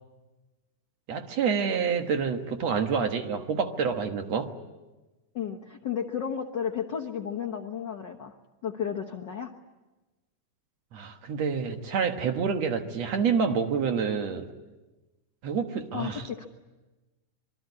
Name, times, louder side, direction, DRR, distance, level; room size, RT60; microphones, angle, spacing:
voice 1, 1.1-4.5 10.9-14.5 15.4-16.2, right 6 dB, 60° right, 6 dB, 2.3 m, -28 dB
voice 2, 5.3-8.3 8.6-9.5 15.9-16.5, left 8 dB, 60° left, 1 dB, 1.2 m, -33 dB
26.5 x 22.5 x 9.7 m, 1.2 s
omnidirectional pair, 3.7 m